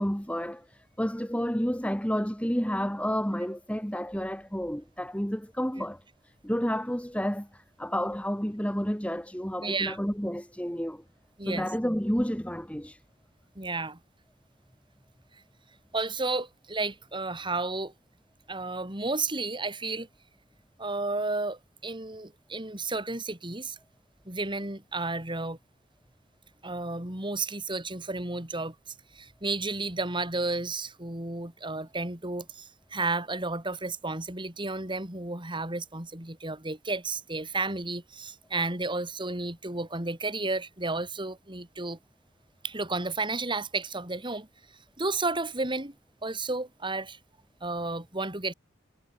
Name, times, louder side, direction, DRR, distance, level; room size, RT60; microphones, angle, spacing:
voice 1, 0.0-6.0 6.4-11.0 11.4-13.0, equal, 5° left, 5.6 m, -30 dB
voice 2, 9.6-10.0 11.4-11.7 13.5-14.0 15.9-17.9 18.5-20.1 20.8-23.8 24.3-25.6 26.6-42.0 42.6-44.5 45.0-45.9 46.2-47.2 47.6-48.5, right 3 dB, 25° right, 5.0 m, -32 dB
head